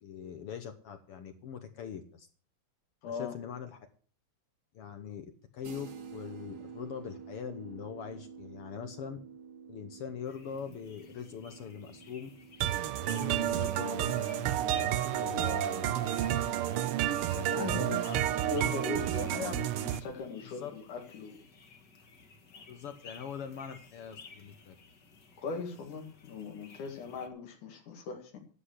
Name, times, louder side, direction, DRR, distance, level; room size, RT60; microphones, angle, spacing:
voice 1, 0.0-2.3 3.0-3.8 4.7-9.2 9.7-12.3 13.0-16.4 16.7-16.8 17.3-18.2 19.3-19.5 20.4-20.7 22.7-24.8, left 8 dB, 65° left, 8 dB, 1.6 m, -42 dB
voice 2, 3.0-3.3 17.4-21.4 25.4-28.4, left 4 dB, 85° left, 2 dB, 3.5 m, -40 dB
sound 1, 5.6-15.3, right 6 dB, 65° right, 2.6 m, -50 dB
sound 2, 10.2-27.3, left 4 dB, 40° left, 2.0 m, -56 dB
sound 3, 12.6-20.0, right 12 dB, 90° right, 1.2 m, -30 dB
11.5 x 7.8 x 8.0 m, 0.41 s
omnidirectional pair, 3.5 m